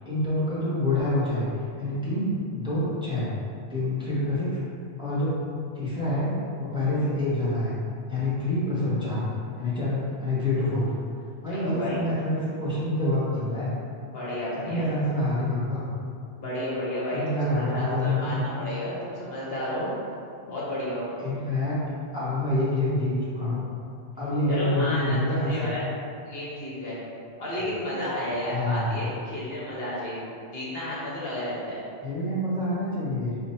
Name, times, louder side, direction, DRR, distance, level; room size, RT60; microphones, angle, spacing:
voice 1, 0.0-1.5 1.8-3.3 3.7-4.6 5.0-5.4 5.7-6.3 6.6-7.7 8.1-9.2 9.6-10.9 11.4-13.7 14.6-15.8 17.1-18.4 21.2-21.8 22.1-23.7 24.2-25.7 28.5-28.9 32.0-33.4, left 1 dB, 5° right, -10 dB, 1.0 m, -27 dB
voice 2, 11.5-12.1 14.0-14.8 16.4-19.9 20.4-21.1 24.5-25.8 26.2-27.0 27.4-30.2 30.5-31.8, left 1 dB, 65° left, -8 dB, 1.3 m, -32 dB
4.5 x 2.5 x 4.3 m, 2.3 s
omnidirectional pair, 1.1 m